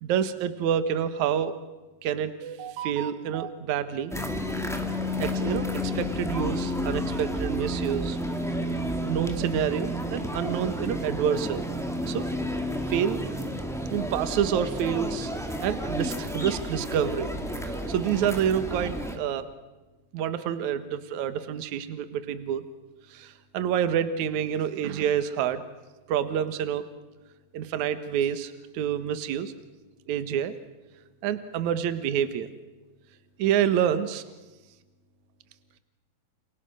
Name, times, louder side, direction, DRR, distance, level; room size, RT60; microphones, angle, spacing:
voice 1, 0.0-1.5 2.0-4.1 5.2-8.2 9.1-11.6 12.1-12.3 12.9-13.2 13.9-15.3 15.6-17.3 17.6-19.4 20.1-22.6 23.1-25.6 26.1-26.8 27.5-29.5 30.1-30.5 31.2-32.5 33.4-34.2, right 9 dB, 60° right, 11 dB, 2.4 m, -28 dB
sound 1, 4.1-19.2, equal, ahead, 1.5 m, -31 dB
29.0 x 29.0 x 6.4 m, 1.2 s
omnidirectional pair, 4.3 m